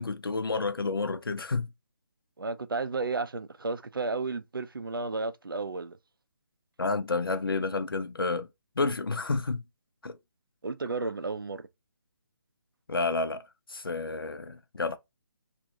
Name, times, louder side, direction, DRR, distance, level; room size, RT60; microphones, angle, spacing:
voice 1, 0.0-1.7 6.8-8.5 8.8-9.6 10.0-10.2 12.9-13.4 13.7-15.0, left 3 dB, 80° left, 0.4 m, -30 dB
voice 2, 2.4-6.0 10.6-11.7, right 3 dB, 75° right, 0.4 m, -33 dB
2.4 x 2.1 x 2.8 m
figure-of-eight pair, 145°, 12 cm